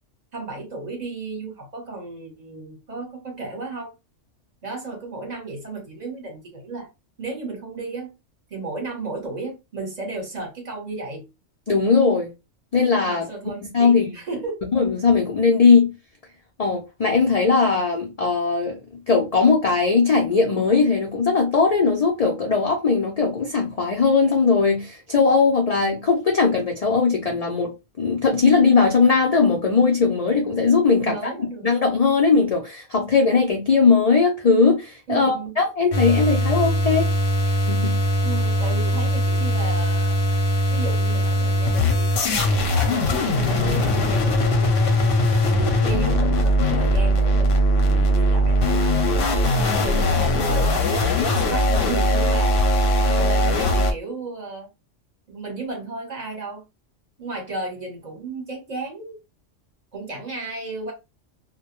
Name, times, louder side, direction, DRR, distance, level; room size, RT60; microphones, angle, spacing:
voice 1, 0.3-3.9 4.6-6.9 7.2-8.1 8.5-11.3 13.0-14.6 31.0-31.7 35.1-35.6 38.2-40.2 40.7-45.1 45.4-49.1 49.8-52.6 53.1-54.7 55.3-56.6 57.2-59.2 59.9-60.9, right 3 dB, 40° right, 0.8 m, -33 dB
voice 2, 11.7-12.3 12.7-13.3 13.7-14.1 14.7-15.9 16.6-18.8 19.1-27.7 28.0-31.3 31.6-37.0 37.4-38.0, left 4 dB, 85° left, 0.3 m, -19 dB
sound 1, 35.9-53.9, equal, 60° left, 0.7 m, -20 dB
2.2 x 2.1 x 2.9 m
omnidirectional pair, 1.3 m